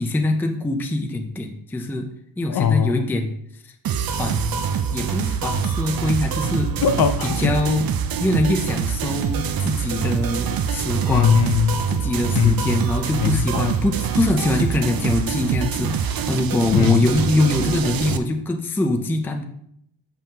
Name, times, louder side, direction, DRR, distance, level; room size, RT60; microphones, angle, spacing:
voice 1, 0.0-2.1 2.4-3.4 3.6-3.7 4.2-4.6 4.9-6.7 7.4-7.9 8.2-11.4 11.9-19.4, left 2 dB, 5° left, 0.4 m, -23 dB
voice 2, 2.5-3.1 6.8-7.6 11.1-11.8 12.4-12.8 13.1-13.7 16.7-17.1, left 7 dB, 60° left, 0.5 m, -20 dB
sound 1, 3.8-18.2, right 7 dB, 55° right, 0.5 m, -25 dB
7.5 x 5.3 x 2.8 m
wide cardioid pair, 160°, 43 cm